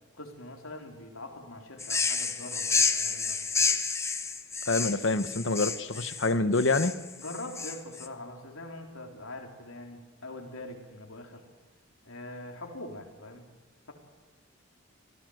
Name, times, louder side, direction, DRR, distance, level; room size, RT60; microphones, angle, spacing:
voice 1, 0.1-3.7 7.2-11.4 12.0-13.5, left 2 dB, 85° left, 2 dB, 3.8 m, -43 dB
sound 1, 1.8-8.1, left 4 dB, 15° left, 1.0 m, -30 dB
voice 2, 4.7-7.0, left 3 dB, 65° left, 12 dB, 1.2 m, -26 dB
25.5 x 17.0 x 8.0 m, 1.4 s
head